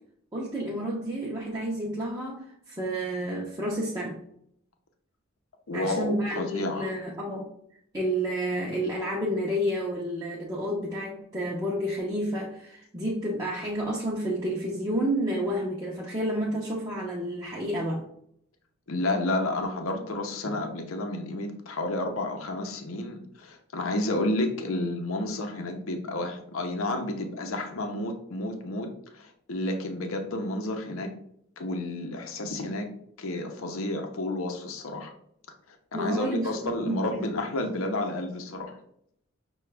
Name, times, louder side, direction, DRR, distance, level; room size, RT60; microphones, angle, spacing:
voice 1, 0.3-4.2 5.7-7.5 7.9-18.0 35.9-37.2, equal, 15° right, -5 dB, 0.6 m, -30 dB
voice 2, 5.7-6.9 18.9-31.1 31.6-32.9 33.2-35.1 35.7-38.8, left 2 dB, 75° left, 4 dB, 0.7 m, -31 dB
5.8 x 2.3 x 3.3 m, 0.69 s
head